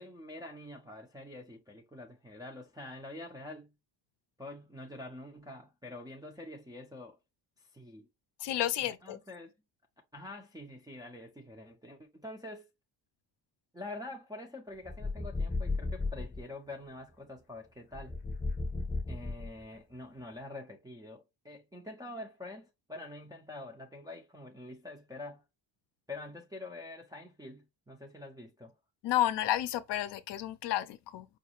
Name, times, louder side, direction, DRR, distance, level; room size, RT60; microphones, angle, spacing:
voice 1, 0.0-3.7 4.4-7.2 7.7-8.1 8.8-9.5 10.1-12.7 13.7-18.2 19.1-25.4 26.1-28.7, left 2 dB, 10° right, 0.3 m, -46 dB
voice 2, 8.4-9.2 29.0-31.3, left 13 dB, 60° left, 0.5 m, -31 dB
sound 1, 14.8-16.4 17.9-19.8, left 3 dB, 15° left, 0.7 m, -34 dB
4.9 x 2.4 x 2.8 m
cardioid pair, 170°, 48 cm